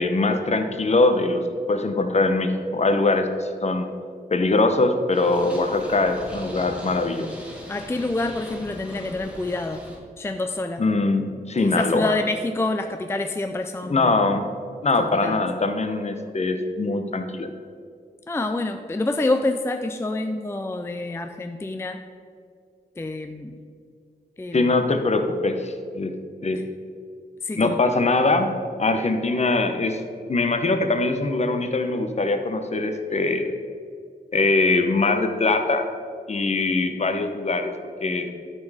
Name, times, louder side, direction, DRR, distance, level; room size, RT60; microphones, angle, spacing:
voice 1, 0.0-3.9 4.3-7.3 10.8-12.1 13.8-14.4 14.8-17.5 24.5-26.1 26.4-26.6 27.6-28.5 28.8-30.0 30.3-33.5 34.3-35.9 36.3-37.7 38.0-38.3, left 3 dB, 40° left, 7 dB, 0.8 m, -22 dB
Purr, 5.1-10.0, equal, 5° right, 1.8 m, -40 dB
voice 2, 7.7-9.8 10.2-10.8 11.6-14.1 15.0-15.4 18.3-22.0 23.0-23.5 24.4-24.7 27.4-27.8, left 2 dB, 15° left, 6 dB, 0.4 m, -27 dB
12.5 x 4.4 x 4.9 m, 2.2 s
wide cardioid pair, 95°, 17 cm